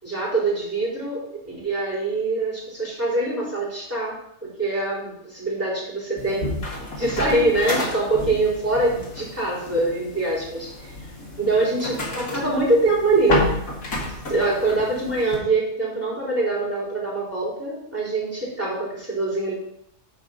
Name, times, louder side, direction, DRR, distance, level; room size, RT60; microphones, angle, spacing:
voice 1, 0.0-6.5 7.0-10.9 11.4-13.4 14.3-19.5, right 2 dB, 10° right, -6 dB, 3.5 m, -24 dB
sound 1, 6.2-15.4, left 1 dB, 80° left, 2.5 m, -30 dB
11.0 x 4.6 x 5.3 m, 0.75 s
omnidirectional pair, 1.4 m